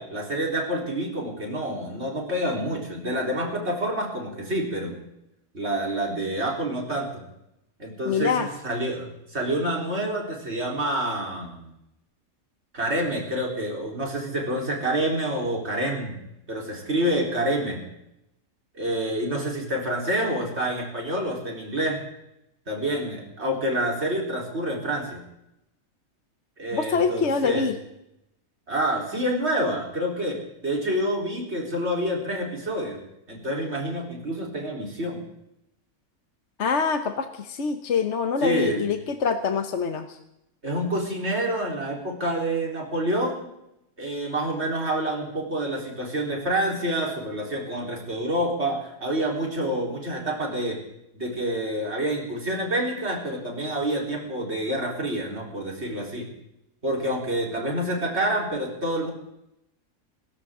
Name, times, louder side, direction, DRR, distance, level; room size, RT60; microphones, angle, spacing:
voice 1, 0.0-5.0 5.5-7.2 7.8-11.7 12.7-16.2 16.5-17.9 18.7-22.0 22.7-25.2 26.6-27.7 28.7-33.0 33.3-35.2 38.4-38.8 40.6-43.5 44.0-50.8 51.1-56.3 56.8-59.1, right 1 dB, 50° right, -1 dB, 4.4 m, -27 dB
voice 2, 8.0-8.5 26.7-27.8 36.6-40.2, left 5 dB, 55° left, 7 dB, 1.3 m, -25 dB
26.0 x 14.5 x 3.8 m, 0.83 s
omnidirectional pair, 1.5 m